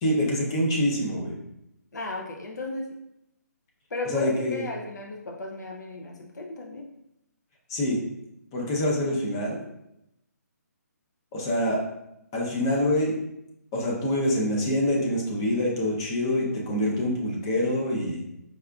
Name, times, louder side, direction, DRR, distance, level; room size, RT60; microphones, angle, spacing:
voice 1, 0.0-1.4 4.0-4.6 7.7-8.0 8.5-9.6 11.3-11.8 12.3-13.2 13.7-18.2, left 1 dB, 15° left, -2 dB, 0.4 m, -25 dB
voice 2, 1.9-3.0 3.9-6.9, left 2 dB, 85° left, 2 dB, 0.5 m, -34 dB
4.7 x 2.4 x 2.2 m, 0.84 s
hypercardioid pair, 170°, 9 cm